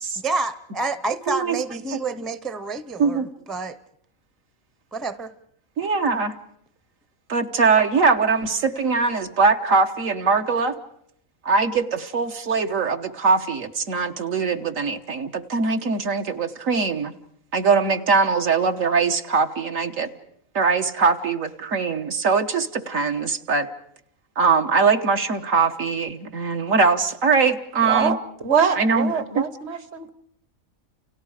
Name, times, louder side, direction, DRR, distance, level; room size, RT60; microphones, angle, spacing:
voice 1, 0.2-3.8 4.9-5.3, right 3 dB, ahead, 0.6 m, -28 dB
voice 2, 1.3-1.6 3.0-3.3 5.8-6.3 7.3-10.8 11.5-17.1 17.5-20.1 20.6-23.7 24.4-28.2 28.8-29.4, right 4 dB, 70° right, 1.7 m, -21 dB
voice 3, 27.8-28.2 28.4-30.1, right 7 dB, 50° right, 1.5 m, -23 dB
29.5 x 29.5 x 5.0 m
omnidirectional pair, 1.5 m